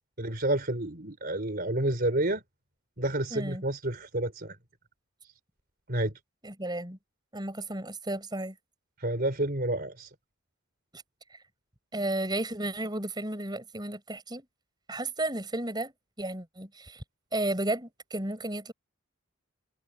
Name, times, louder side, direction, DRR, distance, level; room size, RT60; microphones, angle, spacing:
voice 1, 0.2-2.4 3.0-4.6 5.9-6.1 9.0-10.1, right 1 dB, 40° right, 4.1 m, -29 dB
voice 2, 3.3-3.6 6.4-7.0 7.3-8.6 10.9-11.0 11.9-14.4 14.9-15.9 16.2-17.0 17.3-18.7, right 1 dB, 20° right, 5.8 m, -33 dB
head